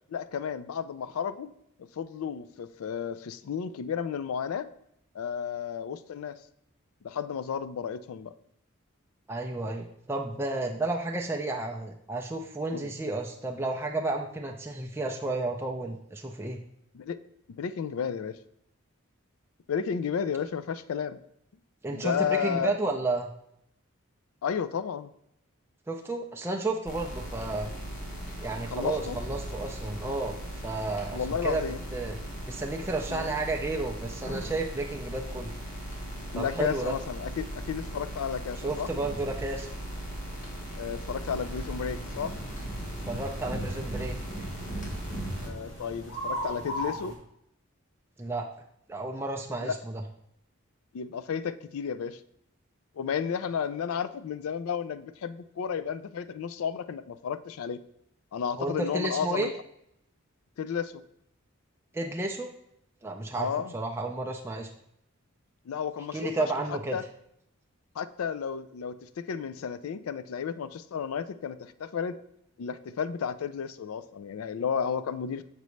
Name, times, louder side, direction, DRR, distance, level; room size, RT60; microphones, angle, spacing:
voice 1, 0.1-1.5 1.8-4.7 5.1-6.4 7.0-8.4 12.7-12.9 16.9-17.2 17.6-18.4 19.7-21.2 21.9-22.8 24.4-25.1 28.6-29.2 31.1-31.8 33.1-33.3 36.3-38.9 40.7-42.3 45.4-47.2 49.6-49.8 50.9-52.2 53.0-57.8 58.3-59.5 60.6-61.0 63.4-63.7 65.7-67.0 68.0-72.2 72.6-75.4, left 7 dB, 85° left, 13 dB, 0.4 m, -32 dB
voice 2, 9.3-16.6 21.8-23.3 25.9-27.7 28.4-30.4 30.6-31.6 31.9-32.2 32.5-35.5 36.3-36.9 38.6-39.7 43.1-44.5 48.2-48.5 48.9-50.0 58.6-59.5 61.9-62.5 63.0-64.7 66.1-67.0, right 2 dB, 10° right, 1 dB, 0.3 m, -32 dB
sound 1, 26.8-45.5, right 1 dB, 35° left, 1.1 m, -38 dB
sound 2, 41.2-47.1, equal, 65° left, 1.6 m, -40 dB
6.7 x 5.2 x 3.1 m, 0.75 s
head